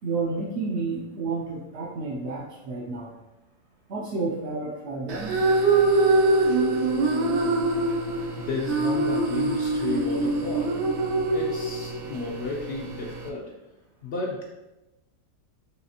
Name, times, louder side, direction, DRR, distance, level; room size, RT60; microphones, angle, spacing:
voice 1, 0.0-3.1 3.9-5.3, right 3 dB, 65° right, -3 dB, 0.6 m, -30 dB
sound 1, 5.1-13.3, right 2 dB, 85° right, 1.3 m, -24 dB
voice 2, 8.4-10.9 11.3-13.5 14.0-14.4, left 3 dB, 65° left, -3 dB, 0.7 m, -33 dB
5.7 x 3.1 x 2.8 m, 0.98 s
omnidirectional pair, 1.8 m